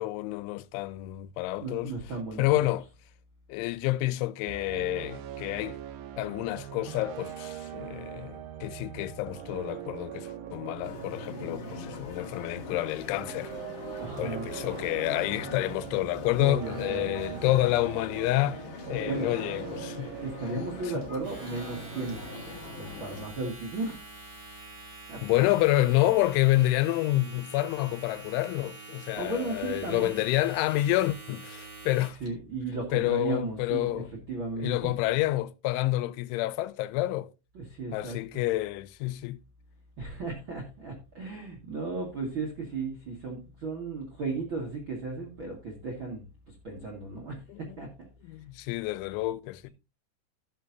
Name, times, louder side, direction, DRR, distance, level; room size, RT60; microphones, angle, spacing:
voice 1, 0.0-1.9 2.4-2.8 3.5-5.8 6.2-13.5 14.2-18.6 18.9-20.1 20.6-20.7 25.2-32.2 32.9-34.1 34.6-37.3 37.9-39.4 47.5-47.6 48.3-49.7, left 17 dB, 90° left, 3.0 m, -28 dB
voice 2, 1.6-2.7 14.0-14.5 16.4-17.6 18.8-19.4 20.2-22.2 22.7-24.1 25.1-25.5 29.2-30.1 32.2-34.9 37.5-38.4 40.0-48.1, right 3 dB, 60° right, 1.2 m, -35 dB
sound 1, 4.5-23.6, right 10 dB, 85° right, 1.9 m, -42 dB
sound 2, 10.8-23.3, left 5 dB, 55° left, 1.6 m, -43 dB
Domestic sounds home sounds, 21.1-32.3, right 3 dB, 25° right, 3.2 m, -46 dB
16.0 x 6.5 x 2.7 m
omnidirectional pair, 5.3 m